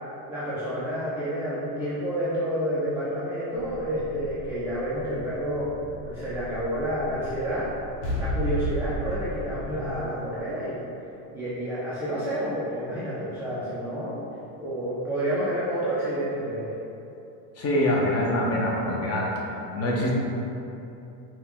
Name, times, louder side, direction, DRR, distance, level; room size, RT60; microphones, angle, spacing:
voice 1, 0.3-7.7 8.2-10.8 11.3-14.2 14.6-16.8, equal, 5° right, -10 dB, 0.3 m, -29 dB
sound 1, 3.5-10.0, right 1 dB, 85° left, 1.1 m, -34 dB
voice 2, 17.6-19.3 19.7-20.2, left 1 dB, 30° left, -2 dB, 0.7 m, -24 dB
4.6 x 2.3 x 3.5 m, 2.8 s
supercardioid pair, 120°, 47 cm